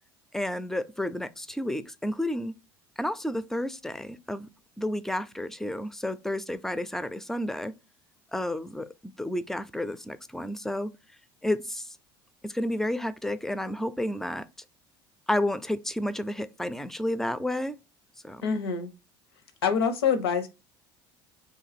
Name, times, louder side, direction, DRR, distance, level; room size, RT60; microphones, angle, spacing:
voice 1, 0.3-2.5 3.0-4.5 4.8-7.7 8.3-10.9 11.4-12.0 12.4-14.5 15.3-17.8 18.2-18.4, left 1 dB, 5° left, 0.4 m, -31 dB
voice 2, 18.4-18.9 19.6-20.5, left 6 dB, 85° left, 0.7 m, -25 dB
2.9 x 2.5 x 4.0 m
hypercardioid pair, 75°, 13 cm